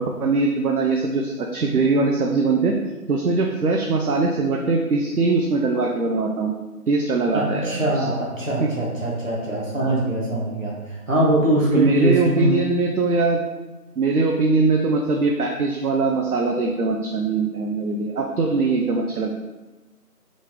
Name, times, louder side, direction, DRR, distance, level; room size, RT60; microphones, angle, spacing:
voice 1, 0.0-2.7 3.1-6.5 6.9-8.1 8.6-8.7 9.8-10.0 11.7-13.4 14.0-19.3, right 3 dB, 70° right, 1 dB, 0.5 m, -21 dB
voice 2, 7.3-12.6, right 1 dB, 55° right, -4 dB, 1.2 m, -22 dB
3.9 x 2.4 x 3.5 m, 1.1 s
figure-of-eight pair, 170°, 46 cm